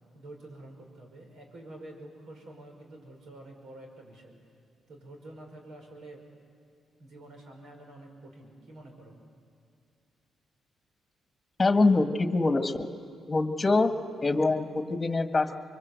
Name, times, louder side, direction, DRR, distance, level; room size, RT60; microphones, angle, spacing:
voice 1, 0.1-4.3 4.9-6.2 7.0-9.2, right 1 dB, 75° right, 2 dB, 5.4 m, -48 dB
voice 2, 11.6-12.9 13.3-13.9 14.2-15.6, left 3 dB, 25° left, 7 dB, 1.5 m, -24 dB
24.5 x 23.0 x 8.2 m, 2.3 s
cardioid pair, 80°, 0 cm